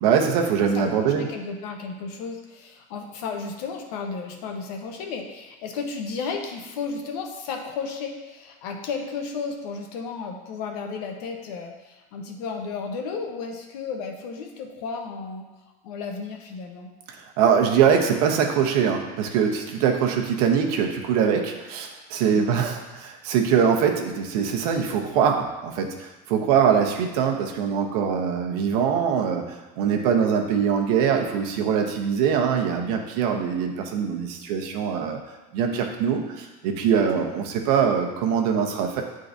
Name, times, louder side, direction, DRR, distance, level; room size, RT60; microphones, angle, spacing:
voice 1, 0.0-1.2 17.1-35.2 35.5-39.0, right 7 dB, 70° right, 3 dB, 0.9 m, -23 dB
voice 2, 0.7-15.4 15.8-16.9 22.3-22.6 37.2-37.4, left 5 dB, 70° left, 3 dB, 1.0 m, -33 dB
9.8 x 3.8 x 2.6 m, 1.2 s
cardioid pair, 170°, 20 cm